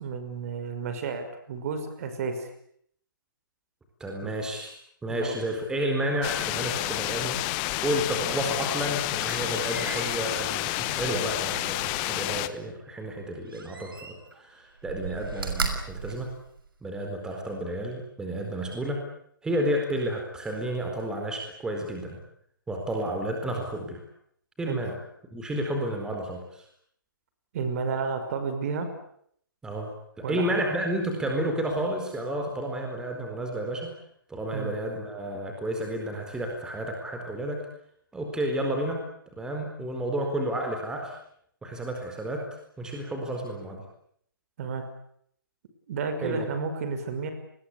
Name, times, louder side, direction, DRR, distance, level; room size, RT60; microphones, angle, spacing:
voice 1, 0.0-2.5 4.2-4.3 5.1-5.4 24.7-24.8 27.5-28.9 30.2-30.6 34.5-34.7 44.6-44.8 45.9-47.3, right 5 dB, 45° right, 9 dB, 5.7 m, -31 dB
voice 2, 4.0-4.7 5.0-7.4 7.8-16.3 16.8-19.0 19.4-22.2 22.7-24.0 24.6-25.0 25.3-26.6 29.6-34.0 34.3-37.6 38.1-39.0 39.4-41.1 41.6-43.8 46.2-46.4, right 1 dB, 5° right, 2 dB, 4.3 m, -31 dB
sound 1, 6.2-12.5, left 18 dB, 25° left, 1.3 m, -30 dB
Slam, 8.5-12.4 13.5-14.4 14.8-17.1 17.6-17.7, right 4 dB, 80° right, 6.2 m, -37 dB
30.0 x 21.5 x 8.4 m, 0.67 s
hypercardioid pair, 150°, 11 cm